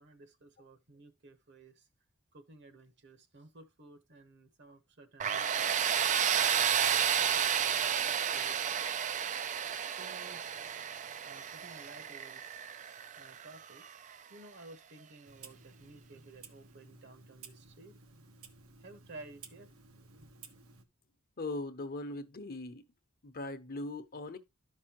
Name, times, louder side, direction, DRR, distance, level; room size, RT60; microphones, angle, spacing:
voice 1, 0.0-1.9 2.3-8.7 9.9-10.5 11.2-12.8 13.2-13.8 14.3-18.0 18.8-19.7 19.9-20.2, right 3 dB, 55° right, 1.2 m, -55 dB
Tools, 5.2-14.0, right 8 dB, 35° right, 0.4 m, -31 dB
Clock, 15.2-20.8, right 4 dB, 80° right, 1.1 m, -55 dB
voice 2, 21.4-22.8 23.2-24.4, left 2 dB, 45° left, 0.9 m, -40 dB
12.0 x 5.5 x 2.9 m
head